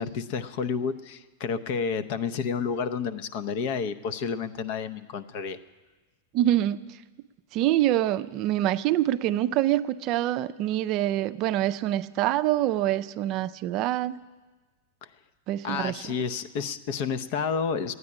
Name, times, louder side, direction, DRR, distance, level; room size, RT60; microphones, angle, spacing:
voice 1, 0.0-5.6 15.0-15.1 15.6-17.9, left 6 dB, 55° left, 13 dB, 0.7 m, -30 dB
voice 2, 6.3-6.9 7.5-14.2 15.5-16.1, right 13 dB, 45° right, 12 dB, 0.4 m, -25 dB
12.0 x 9.6 x 9.7 m, 1.3 s
supercardioid pair, 130°, 0 cm